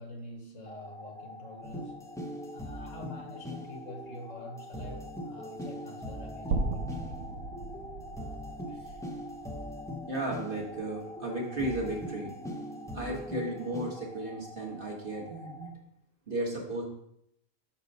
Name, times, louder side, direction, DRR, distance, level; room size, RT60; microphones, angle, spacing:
voice 1, 0.0-2.0 2.5-7.1, left 1 dB, 65° left, 2 dB, 1.5 m, -46 dB
sound 1, 0.7-15.7, left 2 dB, 25° left, 0.8 m, -48 dB
sound 2, 1.6-14.0, left 1 dB, 5° left, 0.4 m, -42 dB
sound 3, 6.5-10.7, right 3 dB, 70° right, 0.9 m, -36 dB
voice 2, 10.1-12.3 12.9-15.7 16.3-16.8, right 1 dB, 40° right, -1 dB, 1.5 m, -34 dB
6.4 x 4.5 x 5.3 m, 0.76 s
omnidirectional pair, 1.5 m